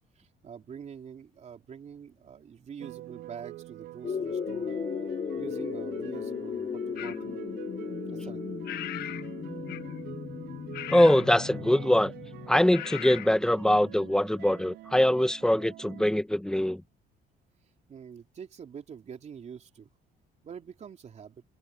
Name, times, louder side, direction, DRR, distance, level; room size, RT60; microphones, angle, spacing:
voice 1, 0.2-4.8 5.3-7.4 8.1-8.4 17.9-19.9 20.4-21.4, right 7 dB, 45° right, 3.8 m, -45 dB
sound 1, 2.8-16.0, right 16 dB, 85° right, 4.1 m, -45 dB
sound 2, 4.0-12.6, left 7 dB, 40° left, 4.2 m, -36 dB
sound 3, 7.0-7.2 8.6-9.3 9.7-10.0 10.7-11.3 12.7-13.3, left 13 dB, 70° left, 1.2 m, -38 dB
voice 2, 10.9-12.1 12.5-16.8, left 1 dB, 5° left, 1.5 m, -23 dB
cardioid pair, 110°, 17 cm